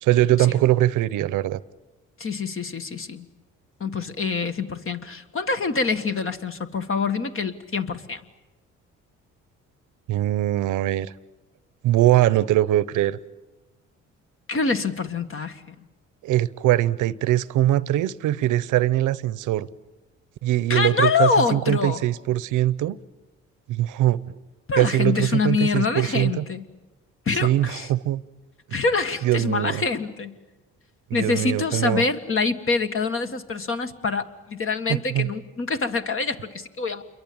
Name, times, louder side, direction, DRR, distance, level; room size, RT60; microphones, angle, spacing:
voice 1, 0.0-1.6 10.1-11.1 11.8-13.2 16.2-19.7 20.4-23.0 23.7-24.2 24.8-26.4 27.4-28.2 29.2-29.8 31.1-32.0 35.1-35.3, right 14 dB, 85° right, 19 dB, 0.8 m, -22 dB
voice 2, 2.2-3.3 3.8-8.2 14.5-15.8 20.7-22.0 24.7-26.7 27.3-27.9 28.7-30.4 31.1-37.0, left 4 dB, 45° left, 8 dB, 1.9 m, -25 dB
28.0 x 23.0 x 8.8 m, 1.1 s
cardioid pair, 90°, 30 cm